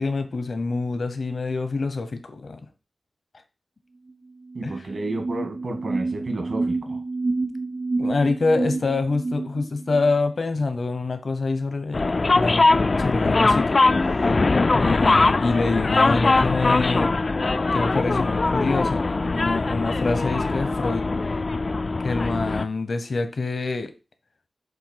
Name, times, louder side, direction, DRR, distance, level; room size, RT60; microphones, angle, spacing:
voice 1, 0.0-2.6 4.6-4.7 8.0-13.8 14.1-14.3 14.8-17.2 17.7-21.1 22.0-23.9, left 3 dB, 70° left, 1.0 m, -26 dB
sound 1, 4.1-4.2 4.4-10.2, right 3 dB, 55° right, 1.1 m, -29 dB
voice 2, 4.5-7.0, right 2 dB, 75° right, 2.2 m, -31 dB
sound 2, 11.9-22.7, left 3 dB, 50° left, 0.3 m, -21 dB
7.9 x 2.8 x 5.8 m
wide cardioid pair, 90°, 0 cm